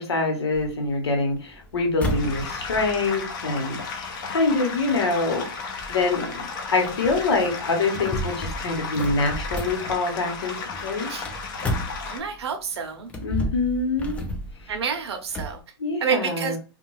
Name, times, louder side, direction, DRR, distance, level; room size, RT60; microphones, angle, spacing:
voice 1, 0.0-5.5 5.9-10.6 10.8-11.1 13.2-14.2 15.8-16.6, left 3 dB, 85° left, 2 dB, 1.1 m, -25 dB
sound 1, 0.5-12.5 13.0-15.6, equal, 10° left, 0.4 m, -34 dB
sound 2, 2.0-12.2, left 4 dB, 50° left, 0.8 m, -34 dB
voice 2, 12.0-13.1 14.7-15.6 16.0-16.6, right 7 dB, 80° right, 6 dB, 0.7 m, -28 dB
2.5 x 2.3 x 3.1 m, 0.35 s
hypercardioid pair, 140°, 13 cm